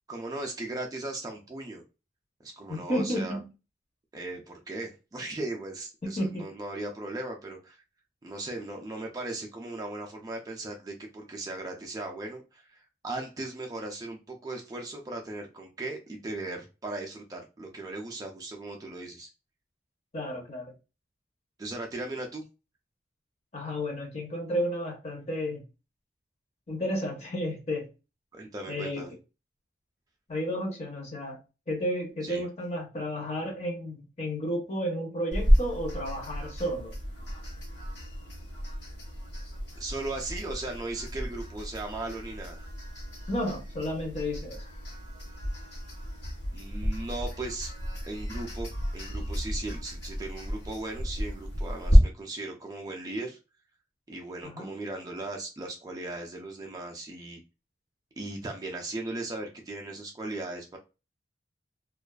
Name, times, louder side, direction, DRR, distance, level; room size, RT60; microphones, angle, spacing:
voice 1, 0.1-1.8 2.4-3.4 4.1-7.8 8.2-19.3 21.6-22.4 28.3-29.1 32.2-32.4 39.8-42.6 46.5-47.7 48.1-53.4 54.1-57.4 58.2-60.8, right 2 dB, 20° right, 0.3 m, -37 dB
voice 2, 2.7-3.5 6.0-6.5 20.1-20.7 23.5-25.6 26.7-27.9 28.7-29.1 30.3-31.4 31.7-36.9 43.3-44.6 54.4-54.7, equal, 35° left, 0.7 m, -32 dB
sound 1, 35.3-52.0, equal, 60° left, 1.0 m, -31 dB
2.4 x 2.3 x 2.2 m
head